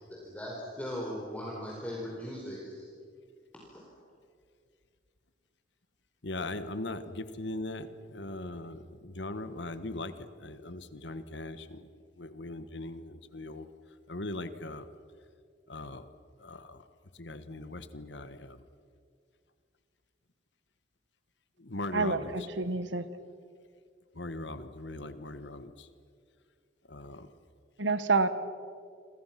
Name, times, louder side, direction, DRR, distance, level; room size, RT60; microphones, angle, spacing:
voice 1, 0.0-2.8 3.5-3.9, equal, 10° left, -4 dB, 4.4 m, -39 dB
voice 2, 6.2-10.1 10.4-11.9 12.2-13.7 14.1-14.8 15.7-16.0 16.4-16.8 17.2-18.6 21.6-22.3 24.1-25.9 26.9-27.3, left 2 dB, 70° left, 11 dB, 1.5 m, -39 dB
voice 3, 21.9-23.0 27.8-28.3, right 3 dB, 80° right, 11 dB, 1.6 m, -28 dB
29.5 x 26.0 x 6.0 m, 2.2 s
head